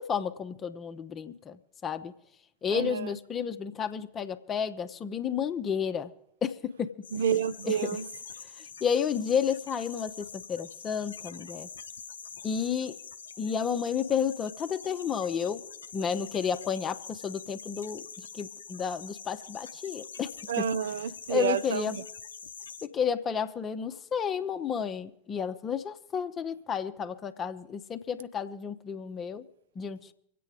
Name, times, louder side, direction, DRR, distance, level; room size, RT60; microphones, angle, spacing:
voice 1, 0.0-2.1 2.6-6.1 6.4-6.9 7.6-8.0 8.8-11.7 12.4-13.0 13.4-15.6 15.9-20.3 20.6-20.7 21.3-22.0 22.8-29.4 29.8-30.1, left 7 dB, 25° left, 0.8 m, -31 dB
voice 2, 2.7-3.1 7.1-8.0 20.5-21.9, right 8 dB, 60° right, 0.6 m, -29 dB
sound 1, 7.0-22.9, left 6 dB, 70° left, 0.7 m, -45 dB
25.0 x 8.5 x 4.9 m
figure-of-eight pair, 90°, 0 cm